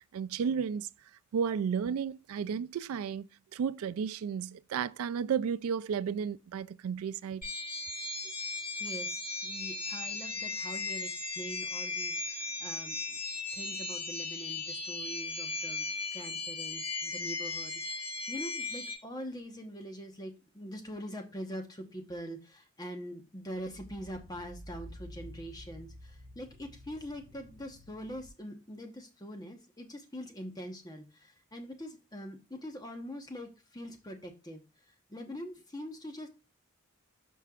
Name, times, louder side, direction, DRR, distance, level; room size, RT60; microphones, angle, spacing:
voice 1, 0.1-0.9 1.3-7.4, right 7 dB, 80° right, 0.3 m, -33 dB
sound 1, 7.4-18.9, left 3 dB, 40° left, 2.3 m, -37 dB
voice 2, 8.8-13.2 13.5-36.3, equal, 20° left, 1.1 m, -44 dB
sound 2, 23.6-28.3, equal, 50° right, 3.5 m, -50 dB
12.5 x 4.6 x 2.4 m
head